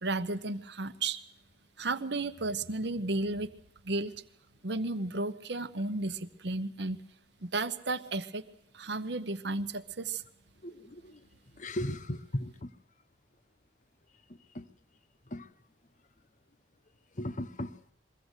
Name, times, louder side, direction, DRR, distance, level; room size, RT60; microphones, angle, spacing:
voice 1, 0.0-1.2 1.8-3.5 3.8-4.1 4.6-7.0 7.4-8.4 8.7-10.2, right 2 dB, 65° right, 1.0 m, -33 dB
voice 2, 11.6-12.7 14.6-14.7 15.3-15.4 17.2-17.9, left 1 dB, 40° left, 0.8 m, -36 dB
22.5 x 16.0 x 8.2 m
head